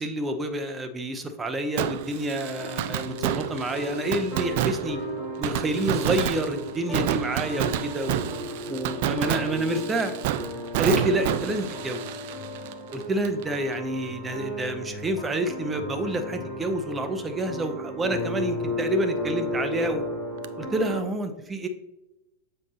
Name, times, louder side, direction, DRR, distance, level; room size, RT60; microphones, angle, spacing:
voice 1, 0.0-5.0 5.4-8.3 8.7-10.2 10.8-12.0 12.9-20.0 20.6-21.7, right 1 dB, 15° right, 7 dB, 0.7 m, -28 dB
Fireworks, 1.8-13.4 13.7-13.8 20.4-20.5, right 12 dB, 50° right, 0.3 m, -30 dB
sound 1, 2.4-21.0, equal, 35° left, 2.0 m, -34 dB
7.1 x 5.3 x 2.8 m, 0.94 s
figure-of-eight pair, 90°, 0 cm